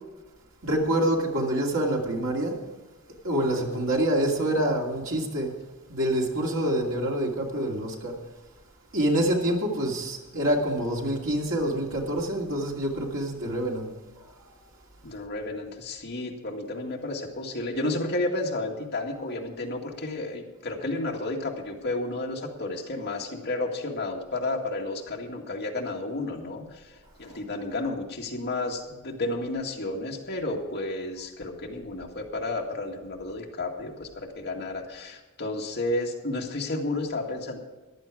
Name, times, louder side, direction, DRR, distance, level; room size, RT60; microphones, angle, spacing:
voice 1, 0.6-2.5 3.2-5.5 5.9-8.2 8.9-14.3 27.3-27.4, right 1 dB, 60° right, -1 dB, 2.5 m, -26 dB
voice 2, 3.5-3.9 15.0-26.9 27.2-37.6, left 2 dB, 50° left, 0 dB, 2.0 m, -32 dB
15.0 x 11.0 x 4.9 m, 1.2 s
head